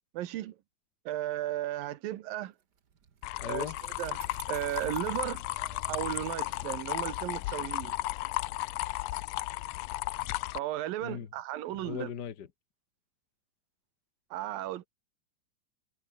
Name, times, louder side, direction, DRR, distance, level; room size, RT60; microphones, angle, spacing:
voice 1, 0.1-0.5 1.1-2.5 3.4-4.2 4.5-5.4 5.9-8.0 10.5-12.1 14.3-14.9, right 14 dB, 85° right, 2.9 m, -35 dB
Bicycle, 2.6-9.3, right 7 dB, 45° right, 1.5 m, -56 dB
sound 1, 3.2-10.6, left 19 dB, 80° left, 1.7 m, -34 dB
voice 2, 3.4-3.8 11.0-11.3 11.7-12.5, left 8 dB, 45° left, 1.5 m, -38 dB
omnidirectional pair, 4.0 m